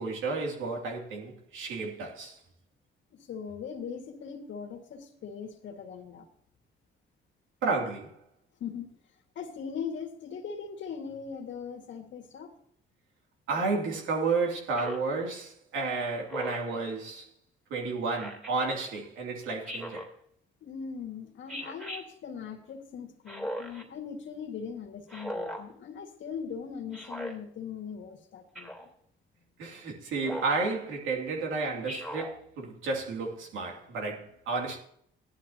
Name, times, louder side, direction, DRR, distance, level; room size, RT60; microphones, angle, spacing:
voice 1, 0.0-2.4 7.6-8.2 13.5-17.3 17.7-20.1 29.6-34.8, right 3 dB, 85° right, 2.8 m, -32 dB
voice 2, 3.1-6.3 8.6-8.9 9.4-12.5 20.6-28.9, left 6 dB, 70° left, 2.0 m, -40 dB
Speech synthesizer, 14.8-15.1 16.3-16.8 18.1-18.5 19.7-20.1 21.5-22.0 23.3-23.8 25.1-25.6 26.9-27.3 28.5-28.9 30.2-30.6 31.8-32.3, equal, ahead, 2.9 m, -38 dB
15.5 x 11.5 x 2.9 m
cardioid pair, 90°, 20 cm